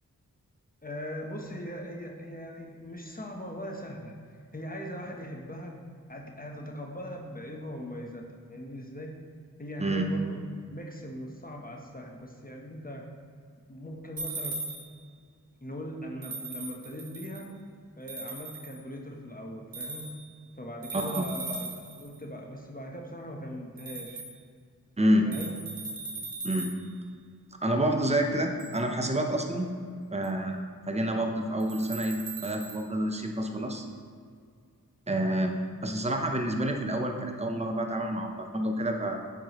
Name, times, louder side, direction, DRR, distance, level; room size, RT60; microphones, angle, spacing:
voice 1, 0.8-4.1 4.5-5.8 6.1-9.1 9.6-13.1 13.7-14.6 15.6-17.5 18.0-20.1 20.6-24.2 25.2-25.6, equal, 25° left, 0 dB, 0.9 m, -40 dB
sound 1, 14.2-15.1 16.2-17.5 18.1-18.8 19.7-20.4 20.8-22.2 23.8-24.4 25.3-26.9 28.6-28.8 30.2-30.3 31.6-32.9, right 3 dB, 70° right, 1.0 m, -39 dB
voice 2, 20.9-21.3 25.0-25.3 26.4-26.7 27.6-29.7 30.1-33.8 35.1-35.6 35.8-39.2, right 1 dB, 20° right, 3 dB, 0.8 m, -28 dB
8.9 x 4.8 x 3.0 m, 2.1 s
cardioid pair, 45°, 36 cm